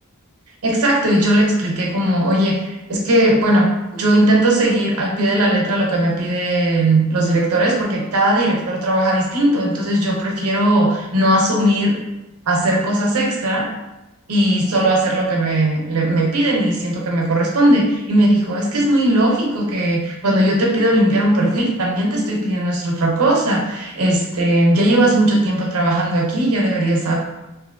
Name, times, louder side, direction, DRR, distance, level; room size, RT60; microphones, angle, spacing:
voice 1, 0.6-12.0 12.5-13.7 14.3-27.2, right 1 dB, 75° right, -1 dB, 0.7 m, -18 dB
3.0 x 2.6 x 2.6 m, 0.97 s
head